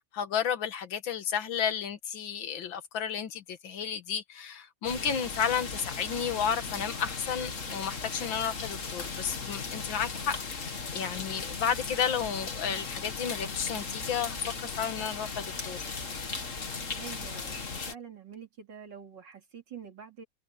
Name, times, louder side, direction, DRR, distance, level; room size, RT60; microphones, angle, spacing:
voice 1, 0.0-15.8, left 7 dB, 75° left, 2.1 m, -32 dB
sound 1, 4.8-17.9, left 4 dB, 40° left, 2.2 m, -37 dB
voice 2, 17.0-20.2, right 7 dB, 60° right, 3.4 m, -46 dB
omnidirectional pair, 2.2 m